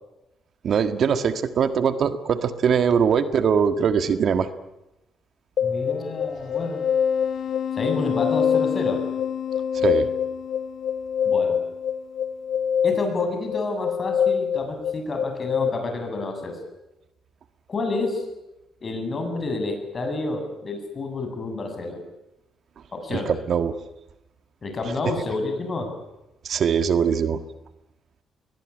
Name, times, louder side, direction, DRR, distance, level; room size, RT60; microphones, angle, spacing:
voice 1, 0.6-4.5 9.7-10.1 23.1-23.8 26.4-27.4, right 7 dB, 60° right, 10 dB, 1.6 m, -22 dB
sound 1, 5.6-15.7, left 8 dB, 60° left, 0.9 m, -25 dB
voice 2, 5.6-6.8 7.7-9.1 11.3-11.6 12.8-16.6 17.7-18.3 18.8-22.1 22.9-23.3 24.6-25.9, left 3 dB, 40° left, 5 dB, 7.9 m, -29 dB
22.0 x 20.0 x 10.0 m, 0.95 s
cardioid pair, 90°, 0 cm